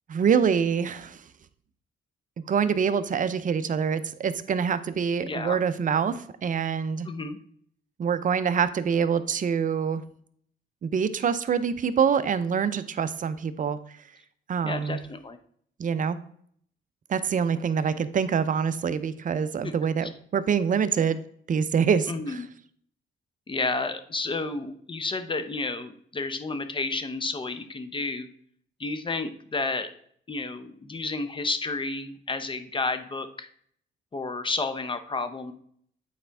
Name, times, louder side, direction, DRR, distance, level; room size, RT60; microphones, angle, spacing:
voice 1, 0.1-1.2 2.4-7.1 8.0-10.0 10.8-14.0 14.5-15.0 15.8-16.2 17.1-21.2 21.5-22.4, right 7 dB, 40° right, 12 dB, 0.6 m, -25 dB
voice 2, 5.2-5.6 7.0-7.4 14.6-15.4 19.6-19.7 20.0-20.1 22.1-22.5 23.5-28.3 28.8-29.9 30.3-33.5 34.1-35.5, left 3 dB, 25° left, 10 dB, 0.7 m, -31 dB
8.5 x 4.3 x 3.4 m, 0.63 s
cardioid pair, 90°, 20 cm